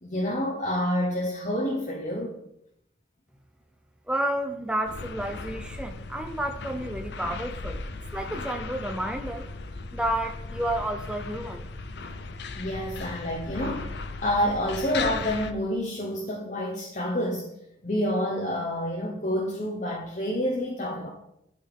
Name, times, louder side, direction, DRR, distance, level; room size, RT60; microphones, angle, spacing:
voice 1, 0.0-2.3 12.6-13.9 14.2-17.5 17.8-21.1, equal, 40° left, -1 dB, 0.9 m, -28 dB
voice 2, 4.1-7.8 8.1-9.5 9.9-11.7, right 1 dB, 5° right, 4 dB, 0.4 m, -31 dB
sound 1, 4.9-15.5, left 3 dB, 60° left, 0.5 m, -37 dB
11.5 x 4.3 x 3.6 m, 0.81 s
head